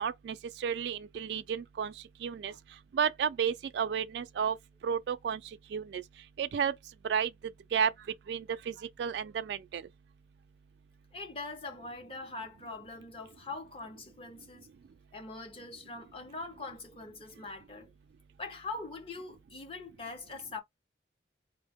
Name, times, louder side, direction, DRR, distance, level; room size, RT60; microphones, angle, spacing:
voice 1, 0.0-1.9 2.2-2.5 2.9-4.6 4.8-5.4 5.7-6.0 6.4-6.7 7.1-7.3 7.7-7.9 8.3-8.7 9.0-9.8, right 7 dB, 70° right, 0.3 m, -31 dB
voice 2, 11.1-14.7 15.1-17.9 18.4-20.6, left 3 dB, 30° left, 0.7 m, -42 dB
3.6 x 2.0 x 3.4 m
head